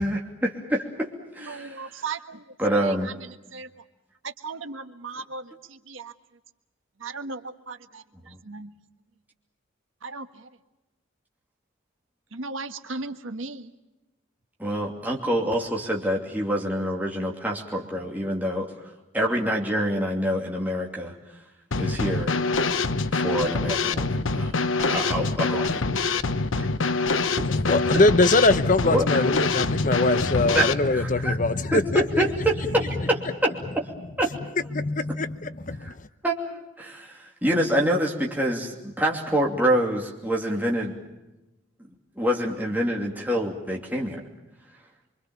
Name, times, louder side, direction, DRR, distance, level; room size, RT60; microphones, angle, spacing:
voice 1, 0.0-1.8 2.6-3.1 8.3-8.4 14.6-18.7 19.1-21.1 21.8-22.4 23.1-25.9 28.9-29.0 30.5-31.4 31.7-33.8 34.2-34.3 35.8-35.9 36.2-40.9 42.2-44.2, right 1 dB, 10° right, 2.8 m, -26 dB
voice 2, 1.4-3.8 4.2-6.1 7.0-8.7 10.0-10.5 12.3-13.7, right 4 dB, 85° right, 1.5 m, -37 dB
Drum kit / Snare drum, 21.7-30.7, left 3 dB, 85° left, 1.0 m, -25 dB
voice 3, 27.5-32.0 34.7-35.9, left 2 dB, 40° left, 0.9 m, -22 dB
25.5 x 25.0 x 7.1 m
head